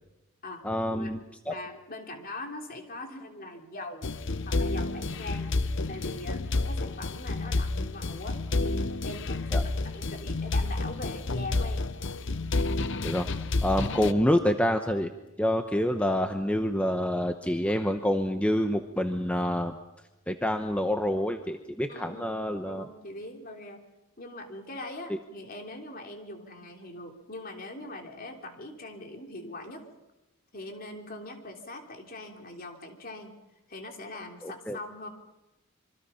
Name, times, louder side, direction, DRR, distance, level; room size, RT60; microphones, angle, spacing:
voice 1, 0.6-1.5 9.5-9.6 13.0-15.1 15.4-19.8 20.3-22.9 25.1-25.2 34.4-34.8, left 1 dB, 5° left, 6 dB, 0.9 m, -27 dB
voice 2, 1.5-4.1 4.4-5.5 5.9-11.9 21.9-23.8 24.2-29.8 30.5-33.3 33.7-35.1, left 2 dB, 45° left, 3 dB, 3.3 m, -42 dB
sound 1, 4.0-14.1, left 2 dB, 60° left, 0.8 m, -30 dB
26.5 x 24.0 x 5.7 m, 0.97 s
head